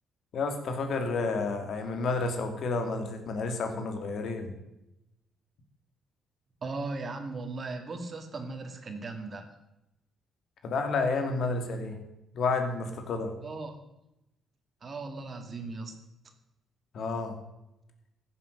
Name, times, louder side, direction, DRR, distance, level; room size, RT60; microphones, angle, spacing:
voice 1, 0.3-4.5 10.6-12.0 12.3-13.3 16.9-17.4, left 3 dB, 65° left, 5 dB, 2.3 m, -30 dB
voice 2, 6.6-9.5 13.4-13.8 14.8-15.9, right 3 dB, 40° right, 6 dB, 2.2 m, -37 dB
15.0 x 7.3 x 6.6 m, 0.91 s
cardioid pair, 90°, 0 cm